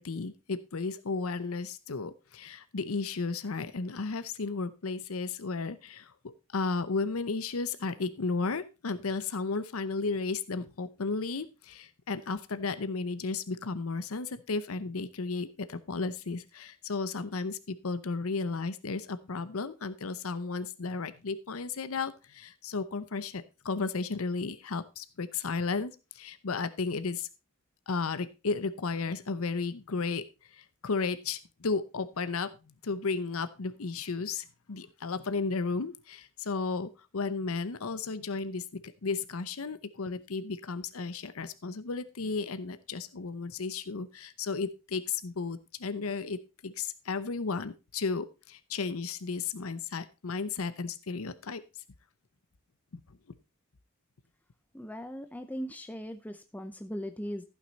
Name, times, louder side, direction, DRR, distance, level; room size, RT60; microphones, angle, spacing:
voice 1, 0.0-6.1 6.5-27.3 27.9-30.2 30.5-32.5 32.8-51.6 52.9-53.0, left 4 dB, 75° left, 12 dB, 0.8 m, -34 dB
voice 2, 54.7-57.4, equal, 5° left, 8 dB, 0.5 m, -39 dB
14.5 x 6.2 x 4.0 m, 0.29 s
head